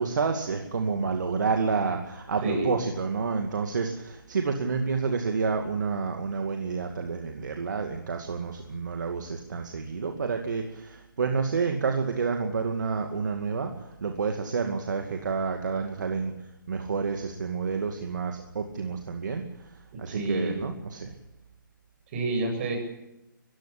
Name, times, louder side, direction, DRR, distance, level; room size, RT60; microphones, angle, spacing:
voice 1, 0.0-13.7 14.0-16.3 16.7-19.4 20.0-21.1, right 5 dB, 60° right, 4 dB, 2.3 m, -29 dB
voice 2, 2.4-2.7 19.9-20.7 22.1-22.8, right 2 dB, 35° right, 3 dB, 8.0 m, -29 dB
22.5 x 15.5 x 8.6 m, 0.89 s
figure-of-eight pair, 150°, 11 cm